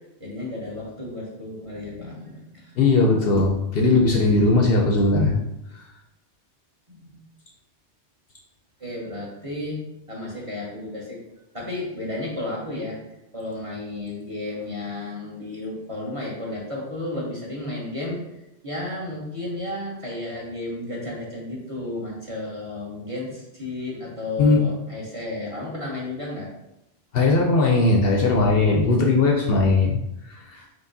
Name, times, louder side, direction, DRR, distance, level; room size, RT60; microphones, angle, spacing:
voice 1, 0.2-2.8 6.9-7.2 8.8-9.8 10.1-11.2 11.5-13.0 13.3-26.5 30.5-30.7, left 2 dB, 30° right, -4 dB, 0.8 m, -33 dB
voice 2, 2.8-5.4 5.7-5.9 24.4-24.6 27.1-30.0 30.3-30.6, left 3 dB, 65° left, 0 dB, 0.7 m, -19 dB
4.6 x 3.1 x 2.6 m, 0.90 s
omnidirectional pair, 1.2 m